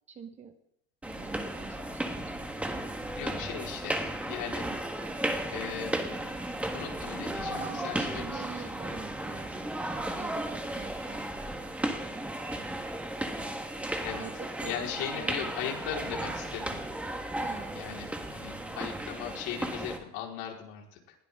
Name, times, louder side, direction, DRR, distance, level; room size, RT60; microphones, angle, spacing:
voice 1, 0.1-0.5 1.0-2.3 7.5-9.7 10.1-11.3 14.2-15.5 17.3-18.1, right 6 dB, 20° right, 8 dB, 1.1 m, -45 dB
sound 1, 1.0-20.0, right 1 dB, 5° right, 1.4 m, -35 dB
voice 2, 3.2-4.0 4.3-4.7 5.0-5.1 5.5-6.0 6.7-8.5 14.0-14.2 14.6-16.8 17.7-21.1, left 9 dB, 65° left, 0 dB, 4.4 m, -38 dB
20.5 x 16.0 x 3.7 m, 0.77 s
cardioid pair, 170°, 30 cm